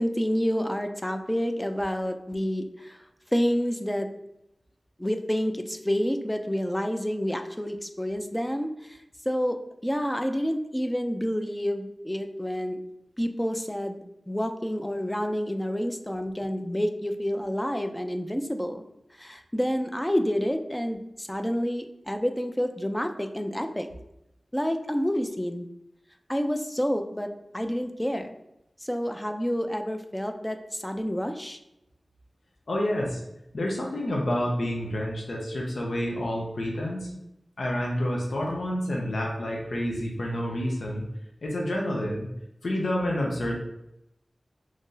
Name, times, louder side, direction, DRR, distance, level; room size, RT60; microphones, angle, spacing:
voice 1, 0.0-3.0 3.3-4.1 5.0-9.0 9.3-12.8 13.2-14.0 14.3-18.8 19.2-23.9 24.5-25.7 26.3-28.3 28.8-31.6, equal, 10° left, 6 dB, 0.4 m, -29 dB
voice 2, 32.7-33.2 33.5-37.1 37.6-41.1 41.4-42.3 42.6-43.5, left 1 dB, 85° left, -2 dB, 0.6 m, -29 dB
3.1 x 2.6 x 3.7 m, 0.84 s
wide cardioid pair, 60°, 0 cm